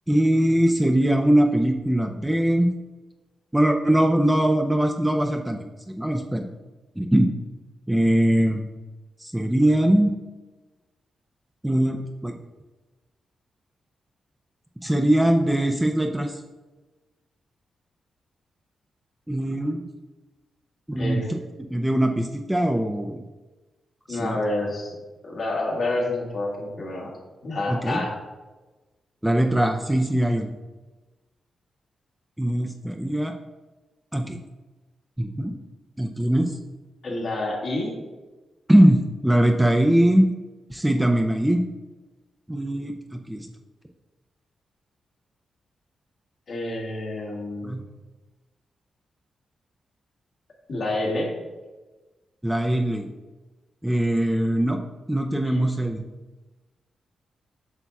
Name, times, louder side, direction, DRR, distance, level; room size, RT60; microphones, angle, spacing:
voice 1, 0.1-2.7 3.5-5.7 6.0-6.5 7.0-7.3 7.9-8.6 9.2-10.1 11.6-12.3 14.8-16.3 19.3-19.8 20.9-21.4 21.7-23.2 24.1-24.4 27.7-28.0 29.2-30.5 32.4-33.3 34.1-34.4 35.2-35.5 36.0-36.5 38.7-40.3 40.7-41.6 42.5-43.5 47.6-47.8 52.4-53.1 53.8-54.8 55.1-56.0, right 1 dB, 10° right, 3 dB, 0.5 m, -21 dB
voice 2, 21.0-21.3 24.1-25.0 25.2-27.1 27.4-28.2 37.0-37.9 46.5-47.8 50.7-51.3 55.4-55.6, left 2 dB, 60° left, -3 dB, 1.8 m, -28 dB
8.1 x 6.0 x 2.3 m, 1.2 s
cardioid pair, 85°, 0 cm